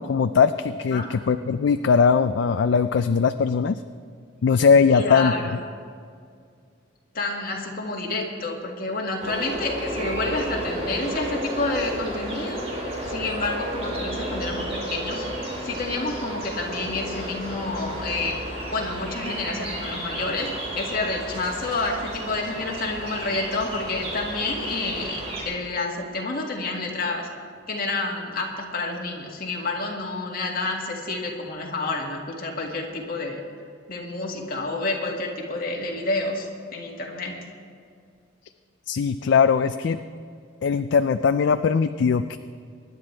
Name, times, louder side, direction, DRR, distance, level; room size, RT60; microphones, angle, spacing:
voice 1, 0.1-3.8 4.4-5.3 38.9-40.0 40.6-42.4, left 6 dB, 65° left, 10 dB, 0.4 m, -20 dB
voice 2, 4.9-5.6 7.1-12.6 13.1-15.2 15.6-18.4 18.7-27.3 27.7-33.4 33.9-37.4, left 2 dB, 50° left, -1 dB, 2.0 m, -29 dB
sound 1, 9.2-25.4, equal, 35° right, 3.1 m, -32 dB
23.5 x 10.5 x 3.3 m, 2.2 s
head